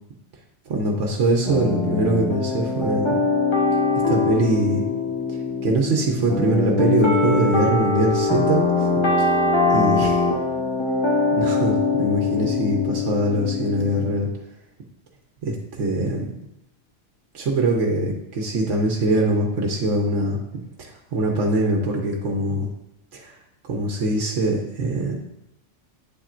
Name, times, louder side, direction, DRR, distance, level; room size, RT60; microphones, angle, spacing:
voice 1, 0.7-3.2 4.1-4.8 5.6-8.9 9.2-9.3 9.7-10.2 11.3-14.3 15.4-16.3 17.3-20.4 20.8-22.7 23.1-23.3 23.6-25.2, right 2 dB, 75° right, 1 dB, 1.3 m, -23 dB
sound 1, 1.4-14.1, left 3 dB, 25° left, 1.0 m, -22 dB
9.3 x 7.3 x 2.6 m, 0.85 s
omnidirectional pair, 1.3 m